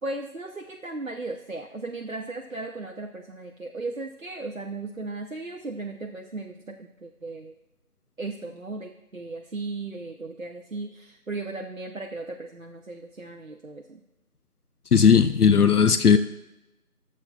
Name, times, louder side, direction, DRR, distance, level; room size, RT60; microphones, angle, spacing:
voice 1, 0.0-7.5 8.2-14.0, right 3 dB, 60° right, 3 dB, 0.6 m, -36 dB
voice 2, 14.9-16.2, left 6 dB, 80° left, 12 dB, 0.6 m, -17 dB
16.5 x 7.2 x 2.3 m, 0.96 s
figure-of-eight pair, 180°, 45 cm